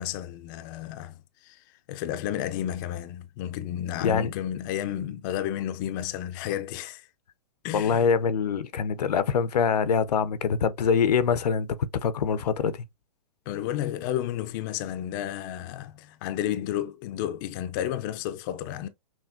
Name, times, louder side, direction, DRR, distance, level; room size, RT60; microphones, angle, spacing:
voice 1, 0.0-1.6 1.9-7.0 7.6-8.1 13.5-18.9, left 11 dB, 30° left, 0.4 m, -32 dB
voice 2, 7.7-12.8, left 6 dB, 85° left, 0.6 m, -24 dB
5.9 x 2.2 x 2.5 m
hypercardioid pair, 140°, 20 cm